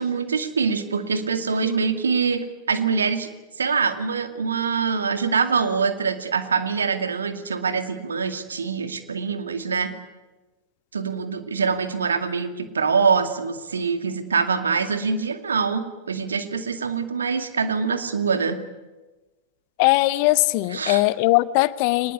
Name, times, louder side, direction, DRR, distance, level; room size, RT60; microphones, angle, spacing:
voice 1, 0.0-3.3 3.6-9.9 10.9-18.6 20.7-21.1, right 5 dB, 70° right, 9 dB, 2.2 m, -24 dB
voice 2, 19.8-22.1, left 20 dB, 45° left, 18 dB, 0.9 m, -20 dB
24.0 x 20.0 x 9.8 m, 1.2 s
figure-of-eight pair, 90°, 0 cm